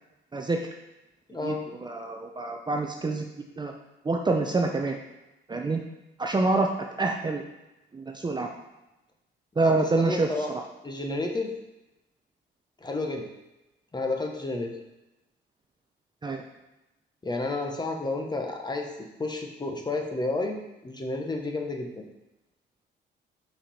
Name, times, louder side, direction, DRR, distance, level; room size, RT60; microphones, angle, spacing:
voice 1, 1.3-1.6 9.6-10.5 10.8-11.5 12.8-13.3 13.9-14.7 17.2-18.9 19.2-22.0, left 2 dB, 20° left, 3 dB, 1.1 m, -31 dB
voice 2, 1.8-3.3 3.6-3.7 4.0-5.0 5.5-5.8 6.2-6.7 7.0-7.4 7.9-8.5 9.6-10.3 16.2-16.4, right 3 dB, 20° right, 2 dB, 0.6 m, -26 dB
5.7 x 5.5 x 4.3 m, 0.97 s
cardioid pair, 90°, 20 cm